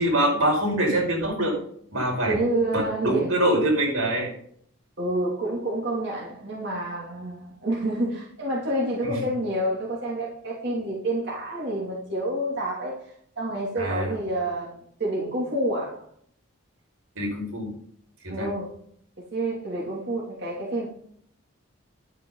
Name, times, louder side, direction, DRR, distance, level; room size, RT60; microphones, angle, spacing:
voice 1, 0.0-1.6 1.9-2.4 2.7-4.3 9.0-9.3 13.8-14.1 17.2-17.7 18.2-18.5, right 1 dB, 85° right, -1 dB, 5.8 m, -24 dB
voice 2, 2.3-3.3 5.0-16.1 18.3-18.7 19.3-20.9, right 1 dB, 55° right, -4 dB, 3.0 m, -28 dB
11.5 x 9.5 x 4.1 m, 0.63 s
head